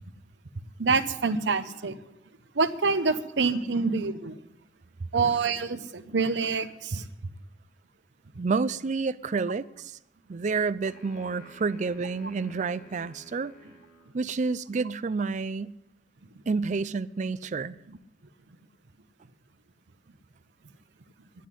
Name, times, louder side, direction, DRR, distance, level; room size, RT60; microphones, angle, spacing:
voice 1, 0.8-2.0 2.5-4.4 5.1-7.0, right 4 dB, 75° right, 0.8 m, -26 dB
voice 2, 8.4-10.0 10.3-13.5 14.1-15.7 16.5-17.8, right 4 dB, 40° right, 0.4 m, -29 dB
sound 1, 10.8-14.2, right 1 dB, 45° left, 2.5 m, -52 dB
10.5 x 9.2 x 9.9 m
head